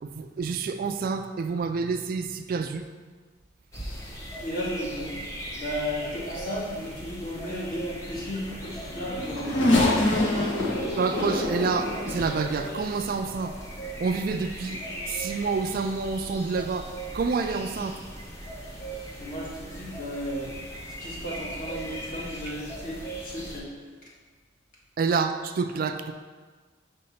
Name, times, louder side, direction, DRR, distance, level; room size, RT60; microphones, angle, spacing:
voice 1, 0.0-2.9 11.0-13.5 14.0-14.8 15.1-16.9 17.1-18.0 25.0-26.1, right 4 dB, 45° right, 8 dB, 0.3 m, -28 dB
sound 1, 3.7-23.6, right 1 dB, 15° left, 0.9 m, -39 dB
voice 2, 4.4-5.2 5.5-9.7 10.1-10.5 19.2-20.7 21.0-23.7, equal, 45° left, -5 dB, 1.6 m, -35 dB
Race car auto racing / Accelerating revving vroom, 8.6-13.1 13.8-13.9 15.0-15.2, left 1 dB, 80° left, 1.4 m, -26 dB
5.3 x 3.7 x 5.7 m, 1.4 s
head